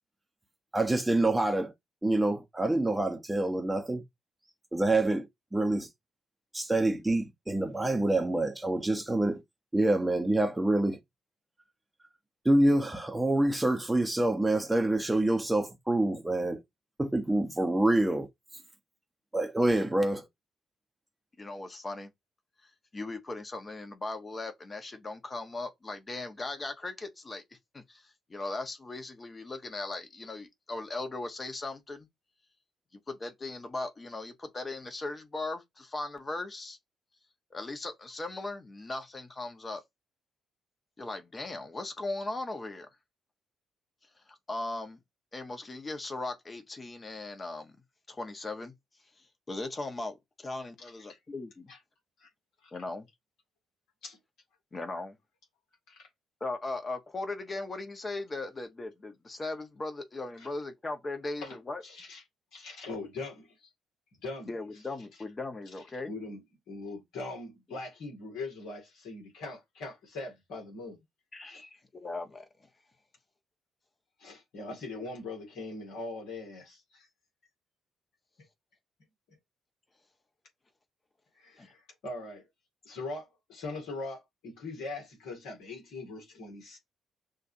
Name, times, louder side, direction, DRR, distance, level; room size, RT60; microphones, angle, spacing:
voice 1, 0.7-1.7 2.0-4.0 4.7-5.9 6.5-9.4 9.7-11.0 12.4-16.6 17.0-18.3 19.3-20.2, right 2 dB, 10° right, 1.0 m, -26 dB
voice 2, 21.4-22.1 22.9-27.4 27.7-32.1 33.1-36.8 37.5-39.8 41.0-42.9 44.3-45.0 45.3-47.8 48.1-48.7 49.5-51.7 52.7-53.1 54.7-55.2 56.4-61.8 64.5-66.1 71.3-72.5 81.6-81.7, left 2 dB, 25° left, 1.2 m, -38 dB
voice 3, 50.8-51.2 51.7-51.8 52.2-52.3 52.6-52.7 54.0-54.2 55.9-56.1 60.4-60.5 61.4-61.6 61.8-62.2 62.5-63.7 64.2-64.5 66.1-71.0 71.5-71.6 74.2-77.1 81.3-82.5 82.9-86.8, left 3 dB, 60° left, 2.2 m, -41 dB
6.3 x 2.7 x 2.7 m
figure-of-eight pair, 40°, 0 cm